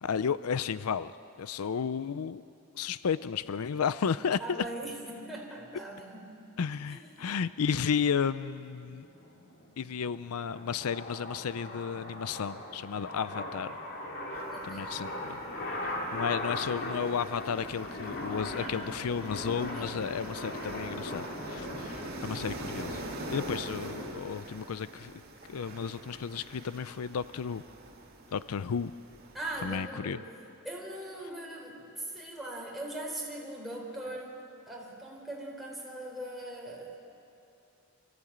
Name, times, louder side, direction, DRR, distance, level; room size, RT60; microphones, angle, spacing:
voice 1, 0.0-1.1 1.4-2.4 2.8-4.6 6.6-9.1 9.8-13.8 14.6-15.4 16.1-23.0 23.3-25.1 25.5-27.6 28.3-28.9 29.6-30.2, left 6 dB, 85° left, 15 dB, 0.5 m, -33 dB
voice 2, 4.4-6.5 6.8-7.3 14.5-15.0 18.5-19.0 19.7-19.9 29.3-30.3 30.6-36.9, right 1 dB, ahead, -3 dB, 3.9 m, -41 dB
sound 1, 8.8-24.2, left 1 dB, 55° left, 3.2 m, -39 dB
sound 2, 14.3-29.9, right 2 dB, 45° right, 2.1 m, -46 dB
24.5 x 14.5 x 8.7 m, 2.6 s
head